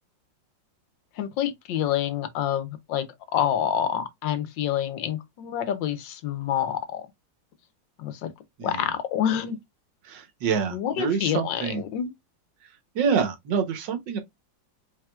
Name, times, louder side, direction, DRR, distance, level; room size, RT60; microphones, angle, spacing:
voice 1, 1.2-3.0 3.3-7.0 8.0-8.3 8.6-9.6 10.7-12.1, left 10 dB, 75° left, 1.4 m, -27 dB
voice 2, 10.0-11.8 12.9-14.2, right 6 dB, 70° right, 1.5 m, -27 dB
4.8 x 3.1 x 2.2 m
omnidirectional pair, 2.1 m